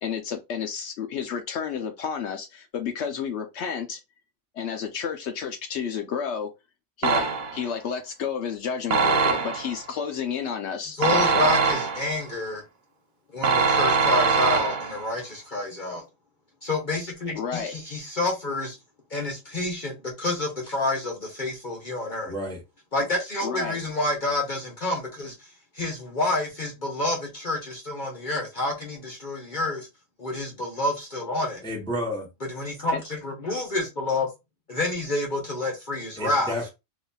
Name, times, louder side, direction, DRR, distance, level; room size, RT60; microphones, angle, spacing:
voice 1, 0.0-4.0 4.5-6.5 7.0-7.3 7.5-11.6 17.4-17.7 23.4-23.8 32.9-33.0, left 7 dB, 70° left, 0.9 m, -31 dB
sound 1, 7.0-7.7 8.9-9.8 11.0-12.2 13.4-15.1, right 5 dB, 85° right, 1.0 m, -22 dB
voice 2, 11.0-12.6 13.3-16.0 16.6-18.8 19.1-22.3 22.9-25.3 25.8-29.9 30.2-31.6 32.5-34.3 34.7-36.5, left 2 dB, 45° left, 1.0 m, -28 dB
voice 3, 22.3-22.6 31.6-32.3 36.2-36.7, equal, 5° left, 0.8 m, -31 dB
4.0 x 2.9 x 2.3 m
omnidirectional pair, 1.3 m